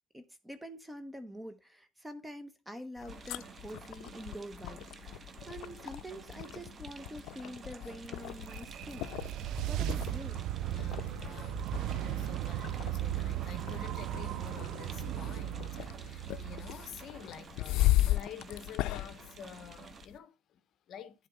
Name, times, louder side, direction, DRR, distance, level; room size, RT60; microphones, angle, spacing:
voice 1, 0.1-9.1 9.6-10.4, equal, 5° right, 1.2 m, -46 dB
sound 1, 3.0-20.2, left 16 dB, 80° left, 0.4 m, -37 dB
sound 2, 3.1-20.1, right 5 dB, 35° right, 0.9 m, -52 dB
sound 3, 8.0-17.3, right 13 dB, 70° right, 0.4 m, -37 dB
voice 2, 10.7-21.3, left 8 dB, 55° left, 1.1 m, -49 dB
11.0 x 3.7 x 5.2 m
cardioid pair, 130°, 0 cm